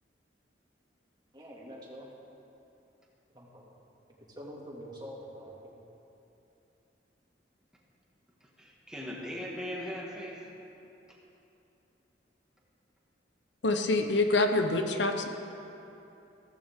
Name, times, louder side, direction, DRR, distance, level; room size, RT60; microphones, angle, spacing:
voice 1, 1.3-2.1 3.3-3.7 4.3-5.8, equal, 25° right, -4 dB, 2.3 m, -45 dB
voice 2, 8.4-10.5, equal, 5° right, -4 dB, 1.8 m, -39 dB
voice 3, 13.6-15.3, left 2 dB, 80° left, 6 dB, 0.9 m, -26 dB
15.5 x 15.0 x 3.7 m, 2.9 s
head